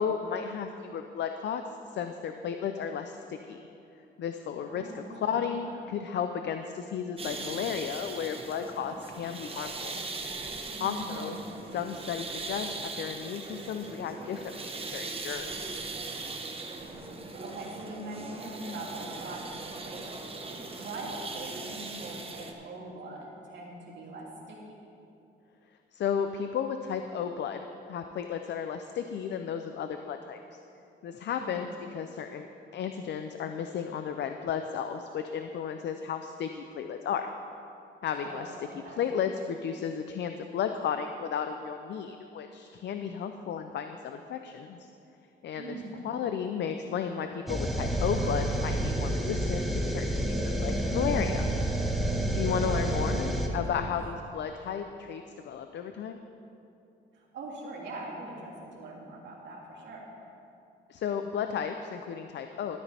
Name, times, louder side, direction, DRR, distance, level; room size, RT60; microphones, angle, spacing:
voice 1, 0.0-3.6 4.2-9.9 10.8-11.4 11.7-15.8 25.9-27.6 27.9-30.4 31.0-31.7 31.9-32.5 32.7-37.3 38.0-44.9 45.4-45.8 46.0-51.5 52.3-56.2 60.9-62.8, left 7 dB, 65° left, 7 dB, 0.6 m, -34 dB
voice 2, 4.7-5.7 10.8-11.5 16.8-24.6 31.4-31.8 38.2-39.1 45.5-46.1 52.6-53.9 57.1-60.1, right 2 dB, 65° right, -5 dB, 3.0 m, -42 dB
sound 1, 7.2-22.5, right 3 dB, 30° right, 1.3 m, -39 dB
sound 2, 47.5-53.5, right 1 dB, ahead, 1.5 m, -29 dB
13.0 x 12.5 x 3.5 m, 2.8 s
cardioid pair, 90°, 20 cm